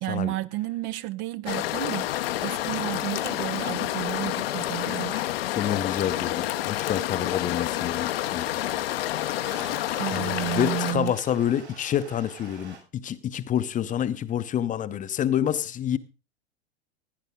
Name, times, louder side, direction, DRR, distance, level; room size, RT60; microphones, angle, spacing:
voice 1, 0.0-5.2 9.4-11.1, right 18 dB, 45° right, 0.6 m, -32 dB
sound 1, 1.5-10.9, left 15 dB, 60° left, 0.8 m, -29 dB
Domestic sounds home sounds, 2.0-3.4 5.9-7.1 9.6-11.2, left 6 dB, 90° left, 1.8 m, -44 dB
voice 2, 5.5-8.5 10.1-16.0, left 10 dB, 25° left, 0.7 m, -28 dB
Stream, 7.1-12.8, right 5 dB, 80° right, 7.8 m, -47 dB
16.0 x 10.0 x 3.7 m
figure-of-eight pair, 90°, 33 cm